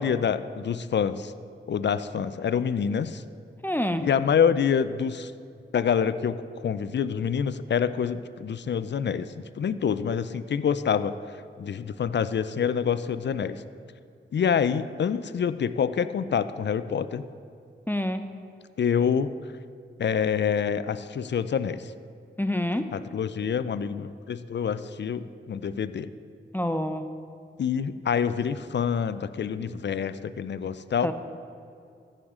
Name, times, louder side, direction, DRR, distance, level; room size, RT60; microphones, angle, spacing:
voice 1, 0.0-1.3 1.7-3.2 4.0-5.3 5.7-9.3 9.6-11.1 11.6-13.6 14.3-17.3 18.8-19.3 20.0-21.9 22.9-26.1 27.6-31.1, left 7 dB, 60° left, 14 dB, 0.5 m, -26 dB
voice 2, 3.6-4.1 17.9-18.3 22.4-22.9 26.5-27.1 31.0-31.1, left 1 dB, 10° left, 8 dB, 0.6 m, -27 dB
14.5 x 6.5 x 3.7 m, 2.4 s
cardioid pair, 40°, 21 cm